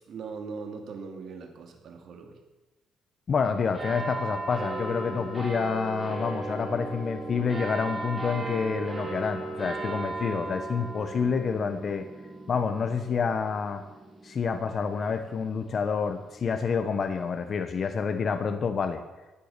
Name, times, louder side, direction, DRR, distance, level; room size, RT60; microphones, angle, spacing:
voice 1, 0.1-2.4, right 5 dB, 60° right, 4 dB, 2.7 m, -40 dB
voice 2, 3.3-12.0 12.5-13.8 14.2-19.0, left 5 dB, 40° left, 8 dB, 1.0 m, -28 dB
sound 1, 3.7-16.6 17.3-17.4, right 2 dB, 25° right, 4.1 m, -37 dB
15.5 x 10.0 x 6.7 m, 1.1 s
cardioid pair, 130°, 0 cm